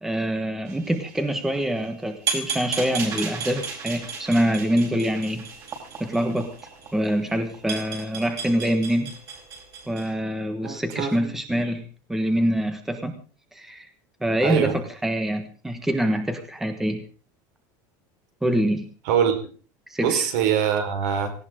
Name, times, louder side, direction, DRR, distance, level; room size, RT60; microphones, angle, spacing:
voice 1, 0.0-5.4 6.0-6.5 6.9-9.1 9.9-11.8 12.1-13.2 13.5-13.9 14.2-17.0 18.4-18.8 19.9-20.2, equal, 5° right, 6 dB, 1.4 m, -25 dB
sound 1, 0.7-10.1, right 5 dB, 35° right, 4.8 m, -35 dB
voice 2, 10.6-11.6 14.4-14.8 19.1-19.4 20.0-21.3, right 8 dB, 65° right, 6 dB, 4.7 m, -24 dB
18.0 x 17.5 x 3.8 m, 0.38 s
cardioid pair, 175°, 10 cm